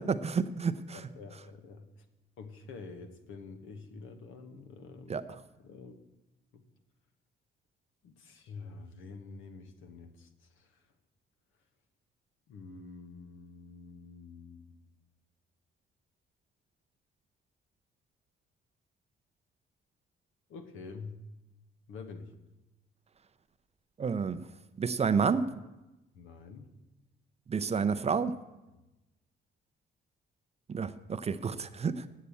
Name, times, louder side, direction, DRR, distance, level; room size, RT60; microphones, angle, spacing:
voice 1, 0.0-1.0 5.1-5.2 24.0-24.4 24.8-25.4 27.5-28.3 30.7-32.1, right 5 dB, 30° right, 13 dB, 0.5 m, -30 dB
voice 2, 0.9-1.9 2.4-5.3 5.6-5.9 6.5-6.6 8.0-10.3 10.6-10.8 12.5-14.7 20.5-21.2 21.9-22.3 26.1-26.7, left 4 dB, 85° left, 8 dB, 1.2 m, -47 dB
8.3 x 7.5 x 8.3 m, 1.0 s
cardioid pair, 90°, 20 cm